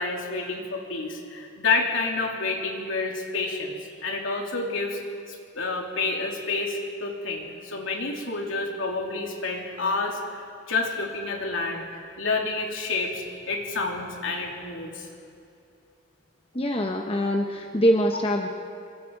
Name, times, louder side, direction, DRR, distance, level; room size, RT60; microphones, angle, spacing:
voice 1, 0.0-3.7 4.0-5.0 5.3-10.2 10.7-11.9 12.2-15.1, left 3 dB, 75° left, 1 dB, 3.0 m, -29 dB
voice 2, 16.5-18.5, equal, 25° left, 2 dB, 1.0 m, -23 dB
26.0 x 23.0 x 4.7 m, 2.6 s
head